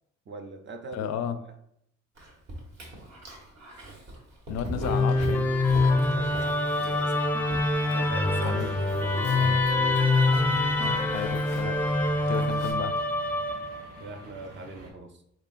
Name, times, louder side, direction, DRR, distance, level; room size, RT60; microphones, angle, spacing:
voice 1, 0.3-1.1 6.1-7.3 7.9-9.7 14.0-15.2, right 2 dB, 40° right, 5 dB, 0.6 m, -42 dB
voice 2, 0.9-1.4 4.5-5.5 8.4-8.7 11.1-11.8 12.3-12.9, left 8 dB, 60° left, 10 dB, 0.4 m, -32 dB
Dog, 2.2-12.7, right 1 dB, 60° right, 1.3 m, -41 dB
Musical instrument, 4.8-14.0, left 2 dB, 5° left, 0.5 m, -25 dB
sound 1, 8.4-14.9, right 1 dB, 90° right, 0.8 m, -43 dB
4.0 x 3.7 x 2.4 m, 0.73 s
cardioid pair, 90°, 30 cm